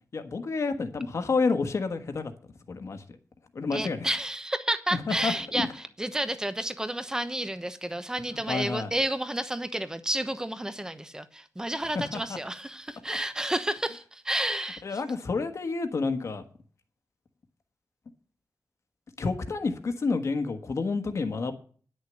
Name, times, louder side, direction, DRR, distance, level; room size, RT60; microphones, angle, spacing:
voice 1, 0.1-3.0 3.5-4.1 5.1-5.7 8.5-8.9 11.9-12.4 13.1-13.2 14.8-16.4 19.2-21.5, left 4 dB, 60° left, 8 dB, 1.5 m, -29 dB
voice 2, 3.7-15.0, right 1 dB, 10° right, 11 dB, 1.0 m, -31 dB
10.5 x 6.6 x 8.8 m, 0.44 s
wide cardioid pair, 125°, 6 cm